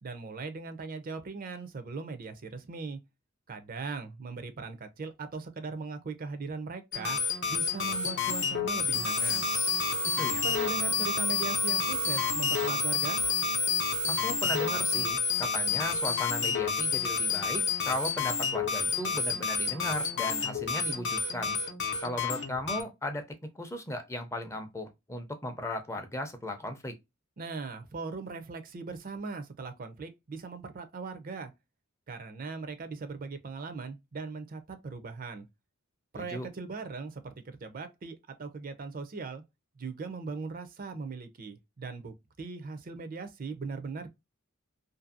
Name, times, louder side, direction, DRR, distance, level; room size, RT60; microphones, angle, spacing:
voice 1, 0.0-3.0 3.5-7.2 7.5-9.4 10.4-13.2 27.4-31.5 32.1-35.5 36.1-39.4 39.8-44.1, right 4 dB, 45° right, 0.5 m, -39 dB
sound 1, 6.9-22.8, left 6 dB, 60° left, 0.6 m, -30 dB
sound 2, 8.9-15.1, right 9 dB, 90° right, 0.7 m, -38 dB
voice 2, 14.1-21.6 22.0-23.3 23.5-26.9 36.1-36.5, left 1 dB, 15° left, 0.5 m, -36 dB
2.6 x 2.6 x 2.5 m
head